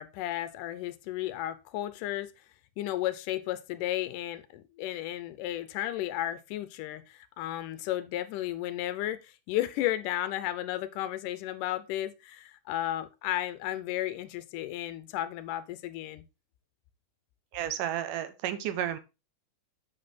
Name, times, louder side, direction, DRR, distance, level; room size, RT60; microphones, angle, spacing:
voice 1, 0.0-2.3 2.8-16.2, left 14 dB, 85° left, 2.2 m, -33 dB
voice 2, 17.5-19.0, right 11 dB, 85° right, 2.4 m, -32 dB
7.4 x 5.5 x 4.1 m
omnidirectional pair, 3.8 m